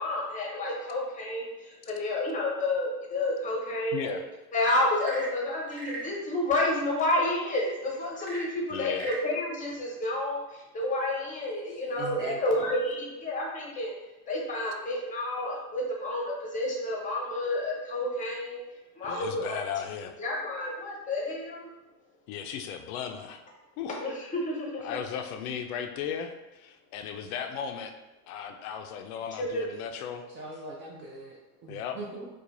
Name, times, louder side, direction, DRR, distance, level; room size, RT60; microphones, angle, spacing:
voice 1, 0.0-4.2 4.5-13.9 14.3-18.6 19.0-19.6 20.2-21.7 24.0-25.0 29.4-29.7, left 1 dB, 15° left, -2 dB, 0.7 m, -30 dB
voice 2, 3.9-4.2 8.7-9.1 19.0-20.1 22.3-23.4 23.8-24.0 24.8-27.9 28.3-30.3 31.7-32.0, left 8 dB, 70° left, 6 dB, 0.5 m, -36 dB
Frog / Percussion / Wood, 4.9-6.2 8.1-9.3, right 2 dB, 45° right, 1.0 m, -40 dB
voice 3, 11.9-12.8 30.3-32.3, right 2 dB, 25° right, -2 dB, 0.4 m, -40 dB
4.6 x 2.3 x 2.5 m, 1.0 s
supercardioid pair, 130°, 45 cm